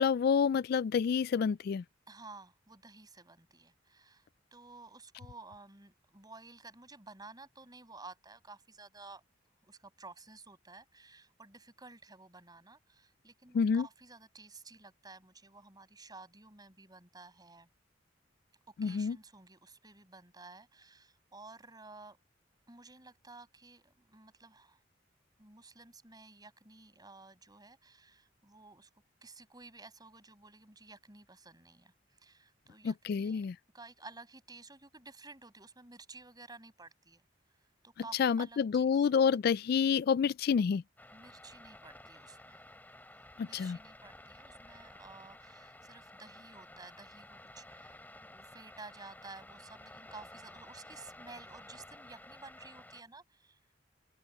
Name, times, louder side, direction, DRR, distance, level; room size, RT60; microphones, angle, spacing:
voice 1, 0.0-1.8 13.5-13.9 18.8-19.2 32.8-33.6 38.1-40.8 43.4-43.8, left 6 dB, 55° left, 0.3 m, -28 dB
voice 2, 2.1-9.2 9.6-17.7 18.7-22.2 22.7-24.8 25.4-28.9 29.2-33.4 33.7-37.2 37.8-39.0 41.1-42.6 43.0-53.6, right 3 dB, 20° right, 7.4 m, -53 dB
sound 1, 41.0-53.0, left 1 dB, 10° left, 4.3 m, -53 dB
open air
head